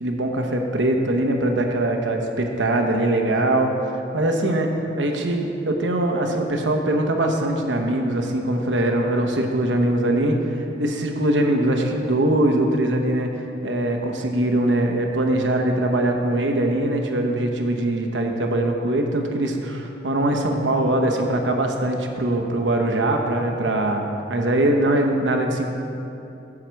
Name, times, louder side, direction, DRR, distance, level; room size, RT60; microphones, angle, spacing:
voice 1, 0.0-3.7 4.1-4.7 5.0-13.3 13.6-25.7, right 1 dB, 90° right, 3 dB, 1.0 m, -22 dB
9.7 x 7.3 x 4.6 m, 2.8 s
head